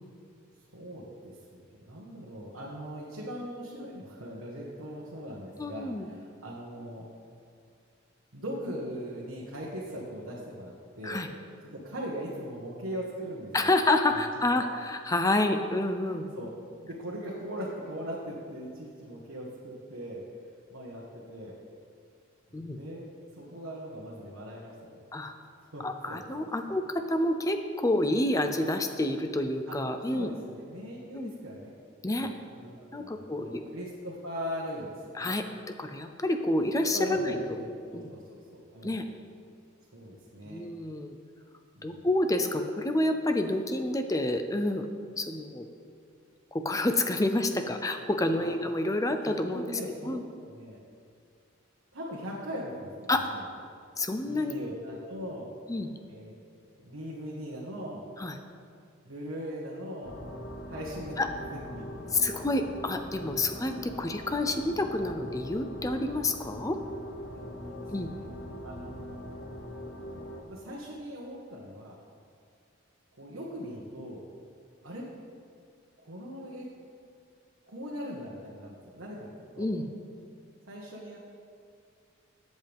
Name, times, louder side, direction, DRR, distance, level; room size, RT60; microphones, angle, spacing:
voice 1, 0.7-7.1 8.3-11.2 11.8-13.7 14.1-14.6 16.0-16.5 16.8-21.5 22.6-23.0 23.3-25.0 25.7-26.7 29.7-29.8 30.1-31.7 32.1-35.3 36.7-38.2 38.5-39.0 39.9-40.6 41.7-42.1 48.4-48.5 49.2-50.2 50.5-50.8 51.9-53.5 54.2-55.5 56.1-56.3 56.7-58.0 59.0-60.2 60.7-61.8 67.3-68.3 68.6-69.2 70.5-72.0 73.2-74.2 74.8-75.0 76.0-76.6 77.7-79.7 80.7-81.2, equal, 80° right, -5 dB, 1.5 m, -40 dB
voice 2, 5.6-6.1 11.0-11.3 13.5-16.2 22.5-22.8 25.1-25.3 25.8-30.3 31.1-31.3 32.0-32.3 32.9-33.6 35.2-35.4 35.8-37.4 37.9-38.1 38.8-39.0 40.5-41.1 41.8-44.9 45.1-45.7 46.5-49.7 50.1-50.2 53.1-53.2 54.0-54.5 55.7-55.9 58.2-58.3 61.2-61.3 62.1-66.8 67.9-68.1 79.6-79.8, left 1 dB, 15° left, 7 dB, 0.5 m, -28 dB
sound 1, 60.0-70.4, left 1 dB, 55° left, 1.3 m, -42 dB
15.0 x 8.0 x 3.5 m, 2.3 s
head